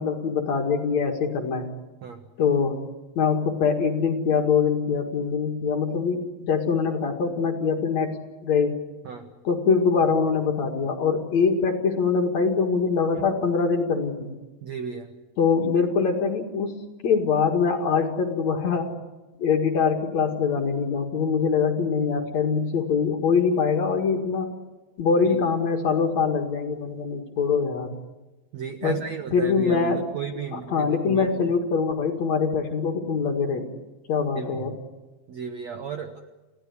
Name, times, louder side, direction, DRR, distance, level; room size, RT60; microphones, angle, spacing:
voice 1, 0.0-1.7 2.4-2.8 3.1-8.2 8.4-8.8 9.4-14.3 15.4-18.9 19.4-24.5 25.0-27.9 28.8-29.0 29.3-30.0 30.5-33.7 34.1-34.7, left 5 dB, 50° left, 4 dB, 2.6 m, -23 dB
voice 2, 14.6-15.1 25.2-25.4 28.5-31.3 34.3-34.6 35.3-36.1, right 6 dB, 85° right, 7 dB, 1.5 m, -34 dB
29.5 x 16.5 x 9.6 m, 1.2 s
omnidirectional pair, 5.2 m